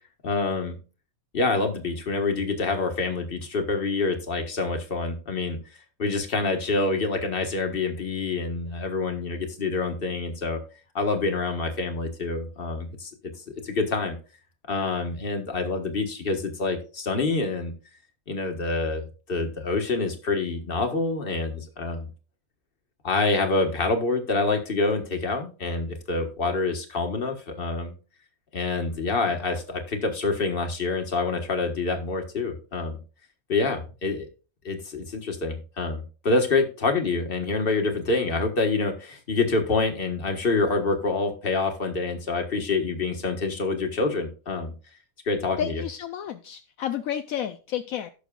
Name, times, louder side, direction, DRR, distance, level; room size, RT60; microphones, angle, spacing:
voice 1, 0.2-0.8 1.3-5.6 6.0-10.6 10.9-13.1 13.6-14.1 14.7-17.7 18.3-19.0 19.3-22.1 23.0-27.9 28.5-33.0 33.5-34.3 34.6-44.7 45.2-45.8, left 3 dB, 40° left, 5 dB, 1.6 m, -26 dB
voice 2, 45.6-48.1, left 10 dB, 75° left, 9 dB, 1.0 m, -31 dB
17.0 x 6.4 x 2.3 m, 0.35 s
omnidirectional pair, 1.5 m